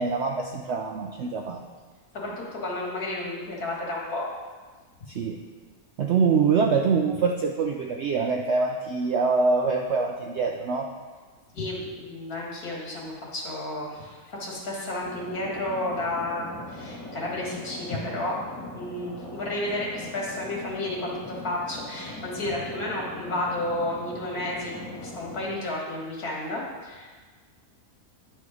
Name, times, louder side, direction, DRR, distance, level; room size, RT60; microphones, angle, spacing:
voice 1, 0.0-1.6 5.1-5.4 6.0-10.9, right 5 dB, 65° right, 3 dB, 0.7 m, -24 dB
voice 2, 2.1-4.3 11.5-18.4 18.7-24.7 25.0-27.1, left 1 dB, 75° left, -3 dB, 2.3 m, -32 dB
sound 1, 15.0-25.5, left 1 dB, 15° left, 1.2 m, -40 dB
9.9 x 4.4 x 4.8 m, 1.4 s
omnidirectional pair, 1.6 m